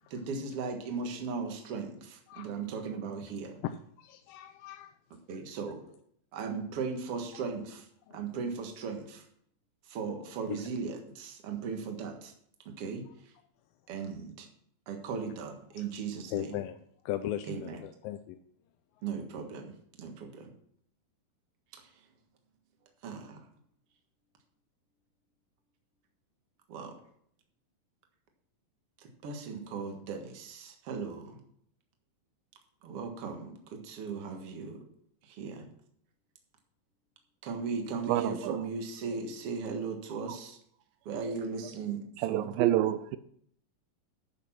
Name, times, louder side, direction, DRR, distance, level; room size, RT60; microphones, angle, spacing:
voice 1, 0.1-3.6 5.3-5.8 6.3-9.3 9.8-12.3 12.7-13.3 13.9-14.5 14.9-16.6 17.5-17.8 19.0-20.5 21.7-21.9 23.0-23.5 26.7-26.9 29.0-31.4 32.8-34.8 35.2-35.7 37.4-40.6 41.1-42.6, right 5 dB, 50° right, 4 dB, 2.1 m, -37 dB
voice 2, 3.6-4.9 8.1-8.2 10.5-10.6 16.3-16.8 17.1-18.4, left 12 dB, 85° left, 9 dB, 2.3 m, -37 dB
voice 3, 38.1-38.6 42.2-43.2, right 13 dB, 85° right, 13 dB, 2.3 m, -27 dB
11.0 x 6.5 x 6.0 m, 0.66 s
omnidirectional pair, 4.1 m